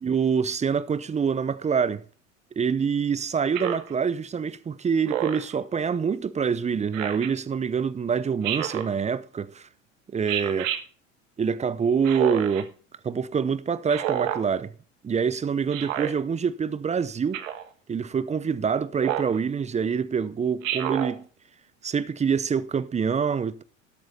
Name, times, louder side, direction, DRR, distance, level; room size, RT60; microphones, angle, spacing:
voice 1, 0.0-2.0 2.6-9.7 10.1-10.7 11.4-12.7 13.0-14.7 15.0-17.4 17.9-21.2 21.8-23.6, right 6 dB, 15° right, 0.7 m, -26 dB
Speech synthesizer, 3.5-3.9 5.1-5.5 6.9-7.3 8.4-8.9 10.3-10.8 12.0-12.6 13.9-14.4 15.7-16.1 17.3-17.7 19.0-19.4 20.6-21.1, right 11 dB, 70° right, 1.6 m, -29 dB
12.5 x 8.5 x 4.2 m
hypercardioid pair, 80°, 40 cm